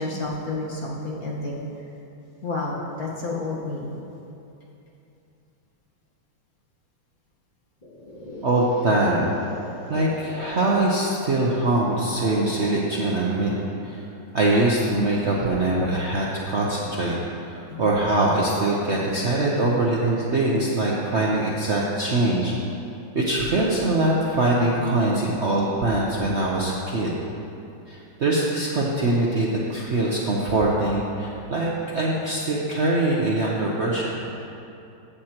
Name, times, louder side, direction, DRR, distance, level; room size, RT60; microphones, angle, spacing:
voice 1, 0.0-1.6 2.4-3.9 17.7-17.8, left 2 dB, 55° left, -4 dB, 1.8 m, -30 dB
sound 1, 7.8-14.7, left 1 dB, 25° left, 2.4 m, -41 dB
voice 2, 8.4-9.3 9.9-13.6 13.8-14.1 14.3-17.2 17.5-22.5 23.1-27.1 27.9-34.2, right 2 dB, 50° right, -4 dB, 0.8 m, -23 dB
15.0 x 7.7 x 2.9 m, 2.8 s
omnidirectional pair, 2.1 m